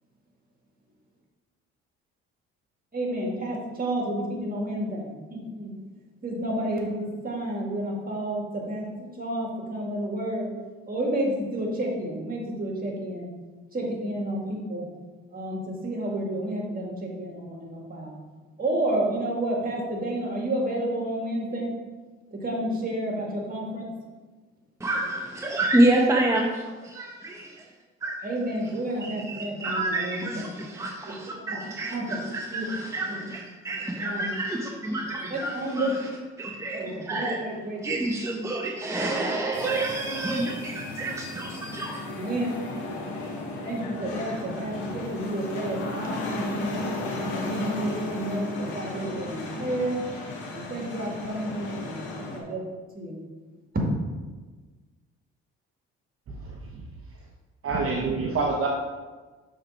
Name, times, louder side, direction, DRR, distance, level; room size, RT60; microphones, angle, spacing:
voice 1, 2.9-5.7 6.2-8.9 9.1-10.5 10.9-13.3 13.7-14.9 15.3-18.2 18.6-21.7 22.3-23.9 28.2-30.6 31.5-31.6 31.9-32.2 32.5-32.6 34.0-34.3 35.3-35.9 36.8-37.8 39.2-39.3 42.1-42.5 43.6-46.9 47.3-50.0 50.5-52.7 52.9-53.2, right 1 dB, 30° right, -1 dB, 2.2 m, -30 dB
voice 2, 24.8-27.7 28.0-28.2 29.0-35.9 36.4-37.4 37.8-42.0, right 1 dB, 10° right, -1 dB, 0.9 m, -28 dB
sound 1, 39.5-52.4, left 2 dB, 85° left, 1.3 m, -35 dB
voice 3, 57.6-58.7, right 4 dB, 50° right, 0 dB, 0.9 m, -25 dB
6.4 x 3.8 x 5.6 m, 1.3 s
supercardioid pair, 70°, 29 cm